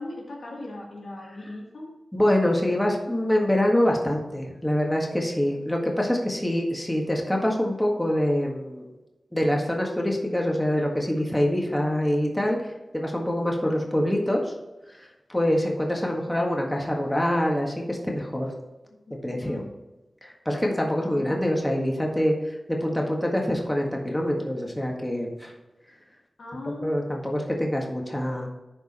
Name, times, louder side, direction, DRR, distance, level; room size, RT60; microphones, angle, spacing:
voice 1, 0.0-1.9 19.1-19.7 21.1-21.3 26.4-27.0, left 2 dB, 85° left, -2 dB, 2.2 m, -39 dB
voice 2, 2.1-8.9 9.3-14.5 14.9-18.5 19.2-19.6 20.2-25.5 26.8-28.5, left 1 dB, 10° left, -1 dB, 1.7 m, -25 dB
11.5 x 4.8 x 4.3 m, 1.1 s
wide cardioid pair, 65°, 0 cm